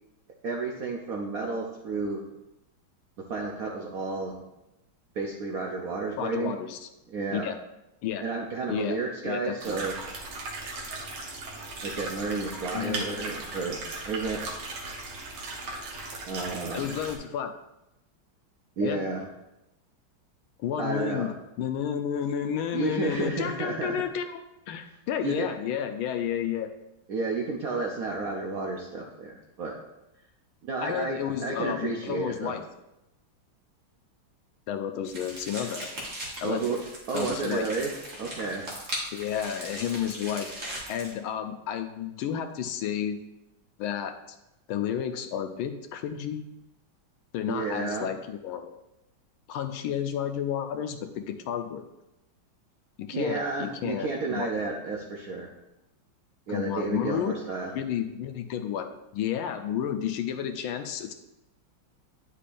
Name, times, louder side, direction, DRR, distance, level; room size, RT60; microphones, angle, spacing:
voice 1, 0.4-2.2 3.3-4.4 5.1-6.5 7.1-7.5 8.2-9.9 11.8-13.8 14.0-14.4 16.3-16.8 18.8-19.3 20.8-21.3 22.7-24.0 25.2-25.5 27.1-29.8 30.7-32.6 36.4-36.8 37.1-37.9 38.2-38.6 47.5-48.1 53.1-55.5 56.5-57.7, right 3 dB, 65° right, 0 dB, 0.9 m, -31 dB
voice 2, 6.2-6.9 7.3-7.6 8.0-8.2 8.7-9.0 9.2-9.8 12.7-13.1 16.7-17.5 18.8-19.0 20.6-26.7 30.8-32.6 34.7-35.9 36.4-36.8 37.1-37.7 39.1-40.5 40.9-43.2 43.8-44.2 44.7-46.5 47.3-48.7 49.5-51.9 53.0-54.7 56.5-57.3 57.7-61.1, left 9 dB, 80° left, 7 dB, 1.4 m, -31 dB
sound 1, 9.6-17.2, right 3 dB, 85° right, 2.0 m, -37 dB
sound 2, 35.0-41.1, right 1 dB, 40° right, 1.8 m, -39 dB
9.9 x 5.4 x 2.5 m, 0.92 s
omnidirectional pair, 2.3 m